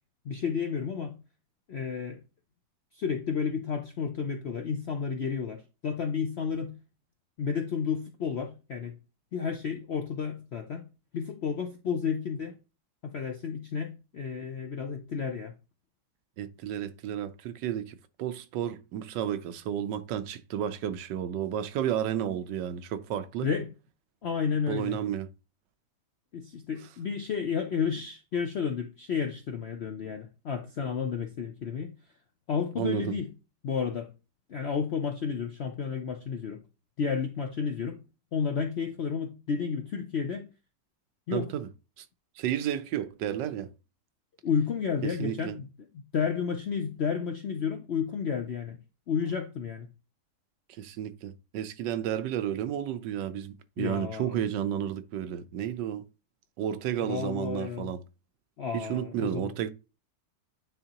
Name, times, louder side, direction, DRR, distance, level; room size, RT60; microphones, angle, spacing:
voice 1, 0.2-1.2 1.7-2.2 2.9-6.8 7.4-8.9 9.3-10.9 11.1-12.6 13.0-15.5 23.4-23.7 24.2-25.0 26.3-31.9 32.5-33.3 33.6-34.1 34.5-36.6 37.0-38.0 38.3-40.5 41.3-41.5 44.4-45.7 46.1-48.8 49.1-49.9 53.8-54.4 57.1-57.9 58.6-59.5, left 6 dB, 65° left, 0.6 m, -31 dB
voice 2, 16.4-23.5 24.7-25.3 32.8-33.1 41.3-41.7 42.0-42.1 42.4-43.7 45.0-45.6 50.8-56.0 56.6-58.0 58.7-59.7, right 10 dB, 80° right, 1.3 m, -32 dB
9.4 x 3.6 x 2.9 m
omnidirectional pair, 1.9 m